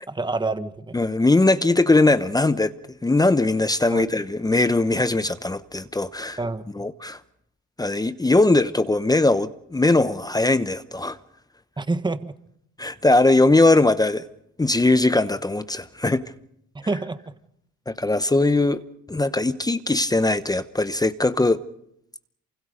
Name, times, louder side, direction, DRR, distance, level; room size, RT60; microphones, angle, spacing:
voice 1, 0.1-0.9 3.9-4.0 6.4-6.8 11.8-12.3 16.7-17.2, right 3 dB, 15° right, 1.5 m, -27 dB
voice 2, 0.9-2.7 3.0-6.4 6.7-7.2 7.8-11.2 12.8-14.2 14.6-16.2 17.9-18.8 19.1-21.6, left 2 dB, 15° left, 1.0 m, -20 dB
28.0 x 25.0 x 5.2 m
supercardioid pair, 80°, 29 cm